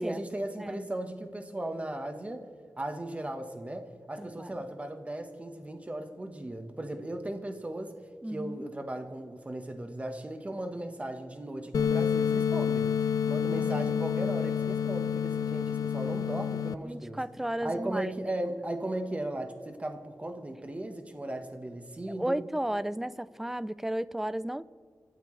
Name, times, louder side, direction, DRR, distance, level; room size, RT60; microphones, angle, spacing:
voice 1, 0.0-2.5 2.8-7.9 8.3-17.2 17.6-22.4, right 1 dB, 20° right, 1.3 m, -37 dB
voice 2, 4.2-4.6 8.2-8.6 13.4-14.3 16.8-18.1 22.1-24.6, right 1 dB, 5° right, 0.4 m, -34 dB
sound 1, 11.7-16.7, left 7 dB, 85° left, 0.5 m, -28 dB
29.0 x 12.5 x 3.3 m
wide cardioid pair, 135°, 6 cm